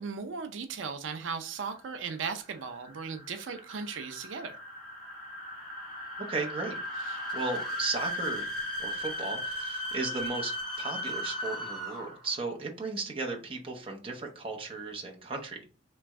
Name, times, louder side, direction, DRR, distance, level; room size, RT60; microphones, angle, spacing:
voice 1, 0.0-4.5 7.1-7.2, right 5 dB, 85° right, 0.5 m, -37 dB
sound 1, 1.6-12.3, left 1 dB, 5° left, 1.5 m, -37 dB
voice 2, 6.3-6.8 7.3-8.5 8.8-10.5 10.8-15.7, right 3 dB, 30° right, 0.7 m, -35 dB
3.3 x 3.0 x 3.4 m
head